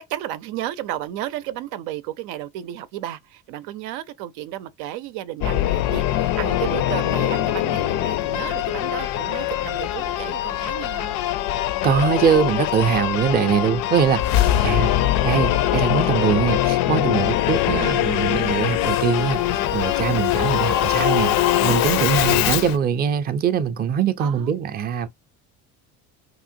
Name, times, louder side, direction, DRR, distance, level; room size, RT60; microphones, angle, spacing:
voice 1, 0.1-11.2 14.5-14.8 21.9-22.1 24.2-24.5, right 12 dB, 85° right, 0.6 m, -33 dB
Singing / Musical instrument, 5.4-22.8, left 13 dB, 70° left, 0.5 m, -22 dB
voice 2, 11.8-14.9 15.2-19.4 19.7-21.3 21.6-25.1, right 7 dB, 25° right, 0.5 m, -22 dB
3.0 x 2.9 x 2.5 m
cardioid pair, 125°, 36 cm